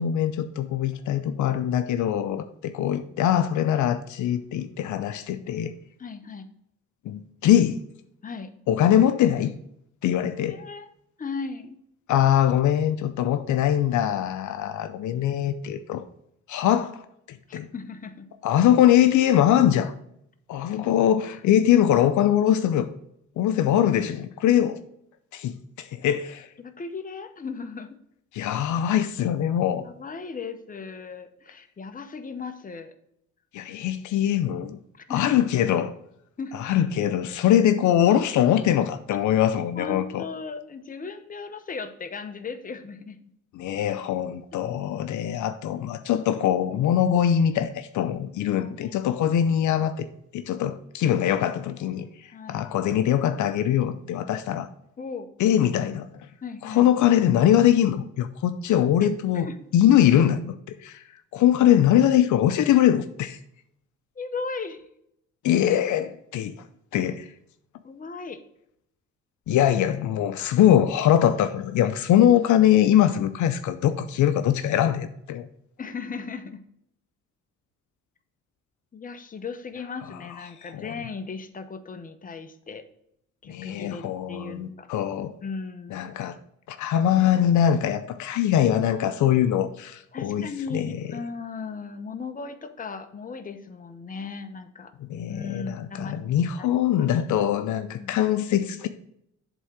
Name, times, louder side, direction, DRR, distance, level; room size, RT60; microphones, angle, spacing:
voice 1, 0.0-5.7 7.1-7.8 8.7-9.5 10.0-10.6 12.1-16.0 16.5-17.0 17.3-17.7 18.4-19.9 20.5-22.9 23.4-24.8 25.3-26.5 28.3-29.9 33.5-34.8 35.1-35.9 36.6-40.2 43.5-50.1 50.3-52.1 52.5-54.7 55.4-56.1 56.6-61.0 61.3-63.4 65.4-66.6 66.9-67.3 69.5-75.5 80.7-80.9 83.5-85.3 85.9-86.4 86.7-91.0 95.0-98.9, left 10 dB, 75° left, 0.6 m, -22 dB
voice 2, 6.0-6.5 8.2-8.5 10.5-10.9 11.2-11.8 17.5-18.3 26.6-28.0 29.7-32.9 34.9-35.3 36.4-36.7 39.8-43.2 48.6-49.2 52.3-52.9 55.0-55.3 56.4-56.9 59.0-59.6 64.2-64.9 67.8-68.4 75.8-76.6 78.9-82.8 83.4-84.9 85.4-86.2 90.1-94.9 95.3-96.2 96.6-96.7 97.9-98.2, left 4 dB, 25° left, 0.9 m, -37 dB
8.0 x 3.7 x 5.9 m
cardioid pair, 90°, 30 cm